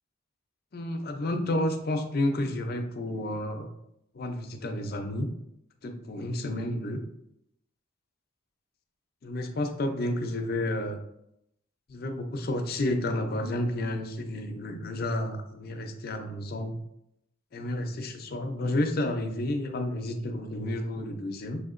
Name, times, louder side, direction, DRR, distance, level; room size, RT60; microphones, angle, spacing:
voice 1, 0.7-3.7 4.1-5.3 5.8-7.0 9.2-11.0 11.9-16.8 17.5-21.6, left 1 dB, 45° left, 5 dB, 0.5 m, -31 dB
6.6 x 2.8 x 2.5 m, 0.80 s
head